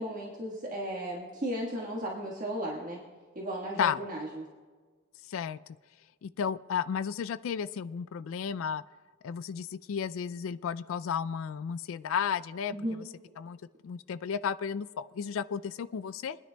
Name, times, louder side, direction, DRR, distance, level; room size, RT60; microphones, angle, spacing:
voice 1, 0.0-3.0 3.3-4.4 12.7-13.0, right 1 dB, 40° right, -4 dB, 1.5 m, -35 dB
voice 2, 5.3-5.6 6.2-8.8 9.2-13.1 13.4-13.6 13.8-16.4, left 7 dB, 80° left, 15 dB, 0.3 m, -33 dB
24.0 x 9.9 x 2.3 m, 1.4 s
head